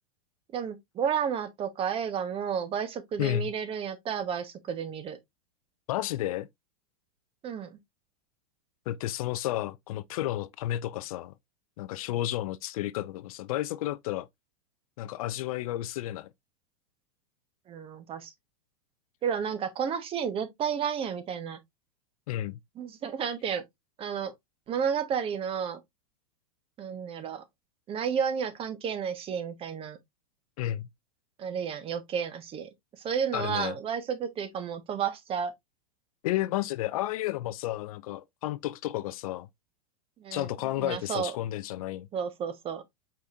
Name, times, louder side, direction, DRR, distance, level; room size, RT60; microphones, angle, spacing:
voice 1, 0.5-5.2 7.4-7.8 17.7-18.3 19.2-21.6 22.8-23.6 24.0-24.3 24.7-25.8 26.8-27.4 27.9-30.0 31.4-32.7 33.0-35.5 40.2-40.5 40.8-41.3 42.1-42.8, right 7 dB, 30° right, 1.0 m, -32 dB
voice 2, 3.2-3.5 5.9-6.5 8.9-11.3 11.8-14.3 15.0-16.3 22.3-22.6 30.6-30.9 33.3-33.8 36.2-39.5 40.3-42.1, left 14 dB, 65° left, 0.4 m, -32 dB
4.9 x 4.2 x 2.4 m
hypercardioid pair, 120°, 20 cm